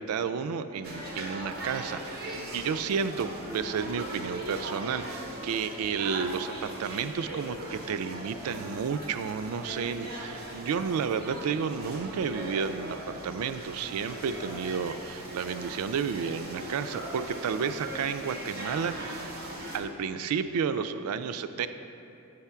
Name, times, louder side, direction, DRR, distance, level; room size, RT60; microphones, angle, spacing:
voice 1, 0.0-19.4 19.7-21.7, right 6 dB, 90° right, 11 dB, 0.3 m, -32 dB
sound 1, 0.8-19.8, right 1 dB, 45° right, 1.0 m, -39 dB
8.0 x 3.5 x 5.6 m, 2.7 s
head